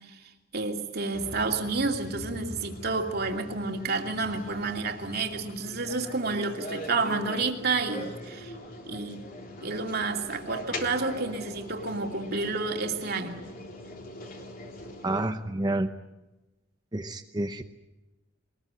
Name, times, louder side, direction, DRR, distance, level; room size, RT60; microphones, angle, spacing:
voice 1, 0.5-8.5 8.9-9.2 9.6-13.4, right 3 dB, 50° right, 3 dB, 2.6 m, -30 dB
sound 1, 1.1-15.3, left 1 dB, 45° left, 3.5 m, -42 dB
voice 2, 15.0-15.9 16.9-17.6, right 2 dB, 20° right, 7 dB, 0.8 m, -29 dB
22.0 x 20.5 x 8.9 m, 1.1 s
head